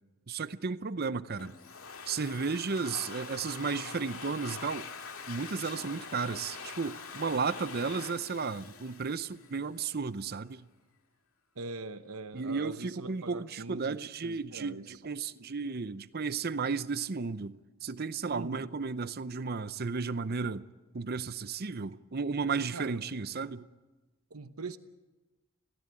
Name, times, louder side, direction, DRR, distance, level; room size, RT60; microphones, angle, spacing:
voice 1, 0.3-1.6 2.1-4.9 5.3-10.7 12.3-20.7 20.9-23.7, right 4 dB, 45° right, 0.7 m, -34 dB
Domestic sounds home sounds, 1.4-9.8, left 5 dB, 85° left, 2.1 m, -44 dB
voice 2, 11.6-14.0 14.2-15.0 18.3-18.7 22.7-23.0 24.3-24.8, right 3 dB, 80° right, 1.0 m, -42 dB
21.5 x 17.0 x 8.8 m
head